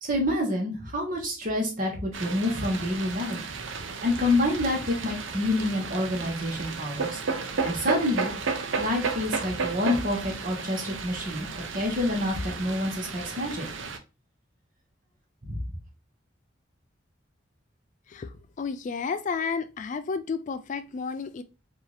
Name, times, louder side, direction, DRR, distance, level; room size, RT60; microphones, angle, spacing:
voice 1, 0.0-3.4 4.0-7.2 7.6-8.3 8.8-11.5 11.7-13.7 15.4-15.6, left 1 dB, 45° right, 1.6 m, -27 dB
sound 1, 2.1-14.0, right 4 dB, 80° right, 0.7 m, -33 dB
voice 2, 18.1-21.4, left 5 dB, 40° left, 0.3 m, -32 dB
4.7 x 2.8 x 3.2 m
head